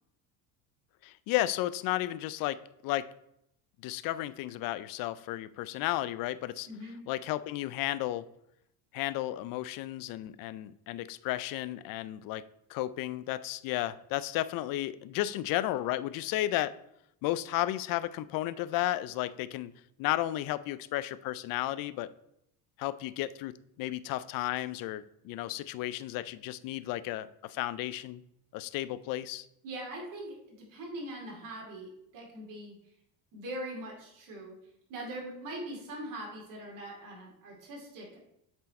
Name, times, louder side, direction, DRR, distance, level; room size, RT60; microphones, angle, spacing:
voice 1, 1.0-3.1 3.8-6.7 7.1-8.3 8.9-12.4 12.7-16.8 17.2-19.7 20.0-22.1 22.8-28.2 28.5-29.5, left 15 dB, 55° left, 16 dB, 0.5 m, -33 dB
voice 2, 6.7-7.0 29.6-32.7 33.3-34.5 34.9-38.2, right 1 dB, 50° right, -2 dB, 2.4 m, -42 dB
7.8 x 4.4 x 4.2 m, 0.78 s
cardioid pair, 135°, 40 cm